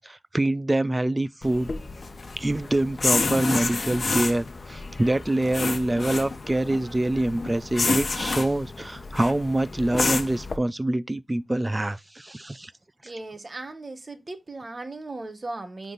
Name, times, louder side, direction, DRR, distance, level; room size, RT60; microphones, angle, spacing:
voice 1, 0.0-1.7 2.4-12.7, right 1 dB, 20° right, 0.4 m, -25 dB
sound 1, 1.4-10.6, left 3 dB, 50° left, 1.0 m, -29 dB
voice 2, 13.0-15.9, right 2 dB, 40° right, 1.2 m, -37 dB
10.0 x 3.8 x 3.9 m
wide cardioid pair, 100°, 0 cm